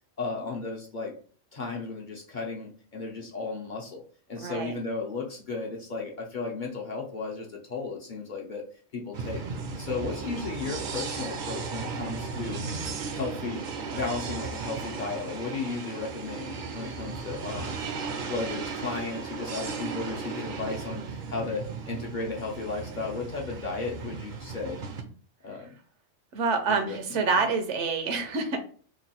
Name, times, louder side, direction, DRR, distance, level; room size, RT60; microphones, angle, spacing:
voice 1, 0.2-1.1 1.5-4.0 4.3-8.6 8.9-9.4 9.8-12.6 13.1-13.7 13.9-17.7 18.3-24.8 25.4-25.7 26.8-27.0, left 4 dB, 50° left, -1 dB, 0.7 m, -34 dB
voice 2, 4.4-4.7 26.3-28.6, right 4 dB, 75° right, 6 dB, 1.0 m, -27 dB
sound 1, 9.1-25.0, right 5 dB, 55° right, 0.6 m, -36 dB
3.0 x 2.2 x 4.1 m, 0.44 s
omnidirectional pair, 1.3 m